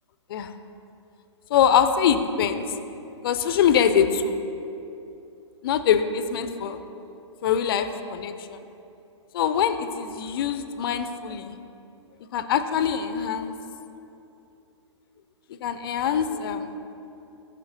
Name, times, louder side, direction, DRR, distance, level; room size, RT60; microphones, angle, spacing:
voice 1, 1.5-2.7 3.2-4.4 5.6-6.8 7.4-8.6 9.3-11.6 12.3-13.6 15.6-16.8, left 8 dB, 50° left, 10 dB, 0.5 m, -23 dB
12.5 x 7.1 x 2.7 m, 2.8 s
figure-of-eight pair, 120°, 15 cm